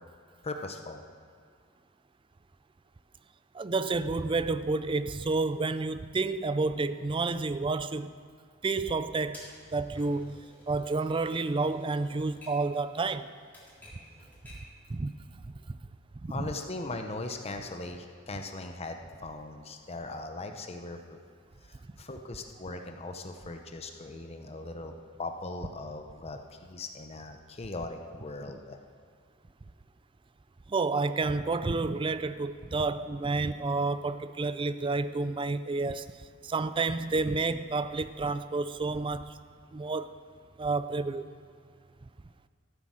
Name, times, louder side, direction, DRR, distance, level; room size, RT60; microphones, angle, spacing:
voice 1, 0.4-1.0 16.3-21.0 22.0-24.9 25.2-28.8, left 2 dB, 30° left, 0.7 m, -39 dB
voice 2, 3.5-8.2 8.6-9.5 9.7-10.4 10.7-13.3 14.9-15.1 15.4-15.8 16.2-16.5 30.7-39.4 39.7-40.1 40.6-41.4, right 3 dB, 25° right, 0.4 m, -30 dB
Typewriter, 9.3-14.8, left 1 dB, 10° left, 3.4 m, -53 dB
14.0 x 8.4 x 6.3 m
head